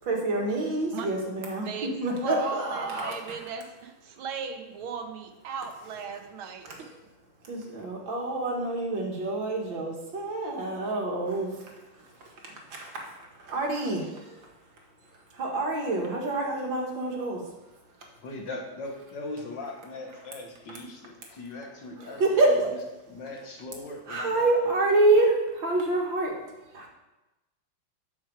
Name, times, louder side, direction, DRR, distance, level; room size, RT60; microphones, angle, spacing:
voice 1, 0.0-3.4 6.6-6.9 7.4-14.5 15.3-17.5 22.0-22.7 24.1-26.4 26.7-26.9, right 2 dB, 65° right, 0 dB, 2.5 m, -27 dB
voice 2, 2.2-6.7, right 6 dB, 80° right, 6 dB, 1.8 m, -36 dB
voice 3, 18.2-22.6 23.1-24.5, left 2 dB, 60° left, 2 dB, 1.9 m, -39 dB
12.5 x 6.2 x 4.7 m, 1.0 s
omnidirectional pair, 2.3 m